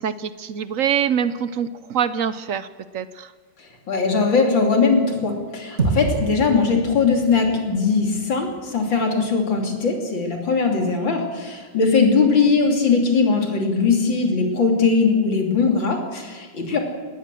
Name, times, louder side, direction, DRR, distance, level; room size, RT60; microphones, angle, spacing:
voice 1, 0.0-2.7 2.9-3.3, right 8 dB, 65° right, 14 dB, 0.8 m, -24 dB
voice 2, 3.6-16.8, left 4 dB, 75° left, 2 dB, 3.8 m, -20 dB
sound 1, 5.8-10.1, right 3 dB, 35° right, 2.8 m, -29 dB
19.5 x 18.0 x 7.6 m, 1.5 s
omnidirectional pair, 2.1 m